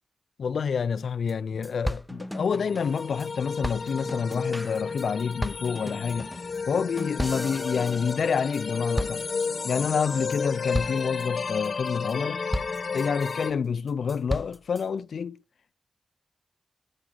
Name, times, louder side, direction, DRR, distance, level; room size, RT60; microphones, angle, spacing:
voice 1, 0.4-6.3 6.7-9.2 9.6-12.4 12.9-15.4, left 6 dB, 90° left, 0.4 m, -28 dB
sound 1, 1.0-1.1 1.3-1.4 1.6-3.3 3.6-8.7 9.0-9.7 10.1-10.4 10.7-11.2 11.6-12.1 12.5-13.5 13.9-14.8, equal, ahead, 0.6 m, -35 dB
sound 2, 2.5-13.5, left 5 dB, 65° left, 1.0 m, -32 dB
13.0 x 6.1 x 3.9 m
cardioid pair, 65°, 0 cm